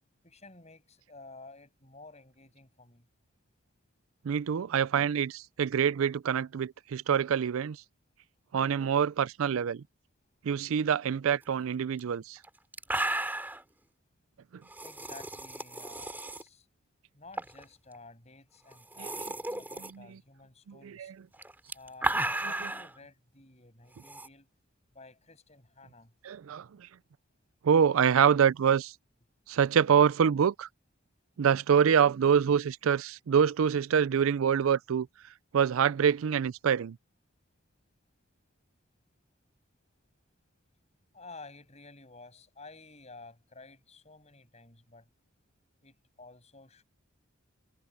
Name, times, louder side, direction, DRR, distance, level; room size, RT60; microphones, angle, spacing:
voice 1, 0.2-3.1 14.8-16.7 17.1-21.1 21.7-24.5 24.9-26.1 41.1-45.1 45.8-46.8, left 3 dB, 30° left, 7.4 m, -52 dB
voice 2, 4.2-7.8 8.5-9.8 10.4-12.4 19.0-19.1 26.2-26.7 27.6-28.9 29.5-30.7 31.4-35.1 35.5-37.0, right 7 dB, 80° right, 0.4 m, -25 dB
sound 1, 12.0-12.1 12.4-12.5 12.7-13.6 14.7-16.4 17.3-17.6 17.9-18.0 18.7-19.9 21.3-22.9 24.0-24.3, right 1 dB, 10° right, 3.2 m, -34 dB
head